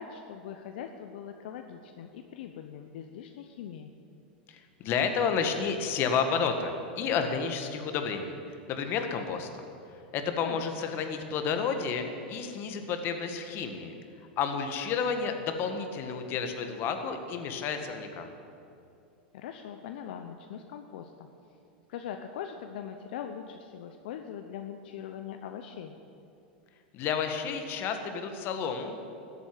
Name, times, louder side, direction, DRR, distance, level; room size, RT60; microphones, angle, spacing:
voice 1, 0.0-3.9 10.4-10.6 19.3-21.3 21.9-25.9, left 8 dB, 70° left, 6 dB, 0.9 m, -41 dB
voice 2, 4.5-9.7 9.9-13.9 14.4-18.3 26.9-29.0, left 6 dB, 45° left, 6 dB, 1.8 m, -31 dB
14.0 x 8.5 x 9.4 m, 2.6 s
hypercardioid pair, 110°, 5 cm